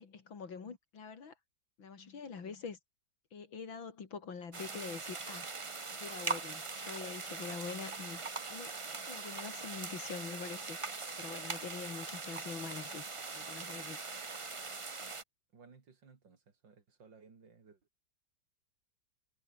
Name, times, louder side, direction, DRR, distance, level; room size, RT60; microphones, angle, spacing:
voice 1, 0.0-1.3 1.8-2.8 3.3-5.5 5.9-8.2 8.5-8.7 9.0-13.0 13.3-14.0, left 5 dB, 75° left, 3.4 m, -45 dB
sound 1, 4.5-15.2, right 4 dB, 30° right, 0.6 m, -41 dB
voice 2, 15.5-17.8, right 5 dB, 65° right, 3.5 m, -59 dB
omnidirectional pair, 2.1 m